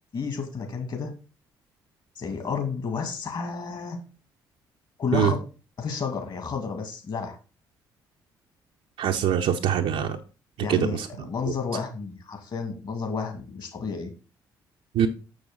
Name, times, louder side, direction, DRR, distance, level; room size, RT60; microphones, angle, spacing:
voice 1, 0.1-1.1 2.2-4.0 5.0-5.4 5.8-7.4 10.6-14.1, left 5 dB, 40° left, 2.1 m, -31 dB
voice 2, 9.0-10.2 10.7-11.1 14.9-15.1, right 9 dB, 55° right, 0.7 m, -23 dB
6.8 x 6.4 x 4.0 m
figure-of-eight pair, 45°, 11 cm